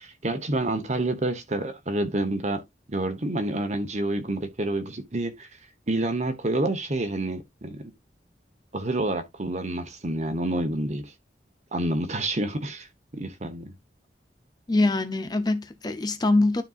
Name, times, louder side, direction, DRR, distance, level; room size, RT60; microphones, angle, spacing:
voice 1, 0.0-2.6 2.9-5.5 5.9-7.9 8.7-11.1 11.7-12.9 13.1-13.7, right 2 dB, 40° right, 1.1 m, -28 dB
voice 2, 14.7-16.6, left 2 dB, 25° left, 0.6 m, -23 dB
12.5 x 4.4 x 2.4 m
head